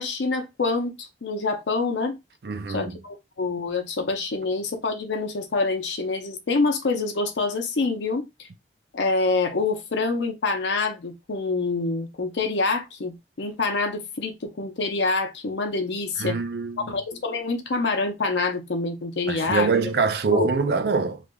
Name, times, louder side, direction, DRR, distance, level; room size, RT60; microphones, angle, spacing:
voice 1, 0.0-2.2 2.7-8.5 8.9-16.4 16.9-19.9 20.3-20.5, left 3 dB, 80° left, 0.6 m, -26 dB
voice 2, 2.4-3.0 16.2-16.9 19.3-21.2, right 4 dB, 60° right, 0.4 m, -24 dB
3.2 x 2.4 x 2.2 m
head